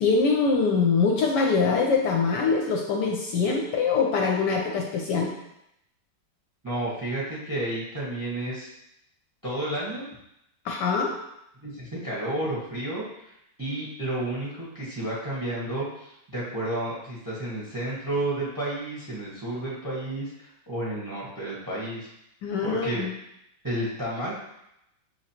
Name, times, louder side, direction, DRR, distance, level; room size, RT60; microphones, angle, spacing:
voice 1, 0.0-5.3 10.6-11.1 22.4-23.1, left 4 dB, 75° left, 0 dB, 1.1 m, -23 dB
voice 2, 6.6-8.7 9.4-10.1 11.6-13.3 13.6-22.1 22.6-23.0 23.6-24.4, right 1 dB, 15° right, -6 dB, 0.8 m, -31 dB
6.2 x 3.0 x 2.8 m, 0.82 s
omnidirectional pair, 2.1 m